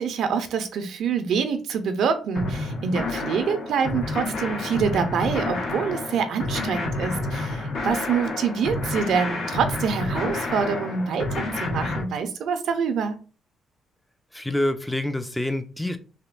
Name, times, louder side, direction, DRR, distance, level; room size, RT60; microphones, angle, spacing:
voice 1, 0.0-13.2, right 6 dB, 75° right, 0.5 m, -26 dB
sound 1, 2.3-12.0, left 2 dB, 75° left, 1.3 m, -29 dB
voice 2, 14.3-16.0, left 1 dB, 10° left, 0.4 m, -26 dB
3.6 x 2.5 x 2.4 m
cardioid pair, 90°, 0 cm